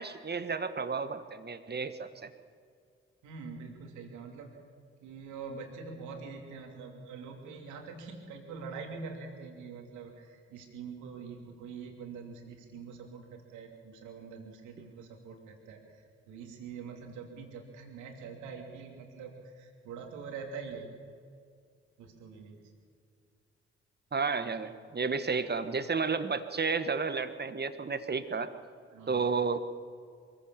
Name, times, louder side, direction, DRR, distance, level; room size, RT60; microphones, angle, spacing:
voice 1, 0.0-2.3 24.1-28.5 29.1-29.6, right 5 dB, 35° right, 10 dB, 1.7 m, -32 dB
voice 2, 3.2-4.6 5.0-20.9 22.0-22.6 28.9-29.2, right 5 dB, 80° right, 2 dB, 2.9 m, -44 dB
23.0 x 16.0 x 7.2 m, 2.2 s
hypercardioid pair, 40°, 29 cm